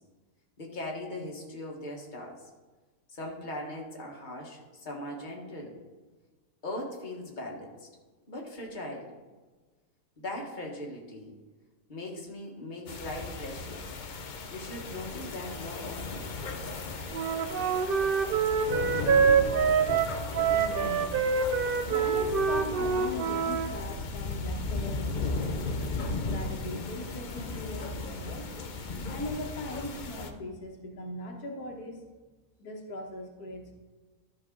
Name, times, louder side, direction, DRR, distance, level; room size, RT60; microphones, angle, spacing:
voice 1, 0.6-2.4 3.1-5.8 6.6-7.9 8.3-9.1 10.2-11.4 11.9-13.9 14.5-16.3, left 1 dB, 30° left, -1 dB, 1.5 m, -39 dB
sound 1, 12.9-30.3, left 3 dB, 50° left, 0.6 m, -36 dB
Wind instrument woodwind instrument, 17.1-23.7, right 6 dB, 85° right, 0.5 m, -26 dB
voice 2, 20.5-25.7 26.2-28.5 29.1-32.0 32.6-33.7, left 1 dB, 85° left, 1 dB, 1.8 m, -39 dB
13.0 x 5.6 x 3.8 m, 1.3 s
omnidirectional pair, 1.6 m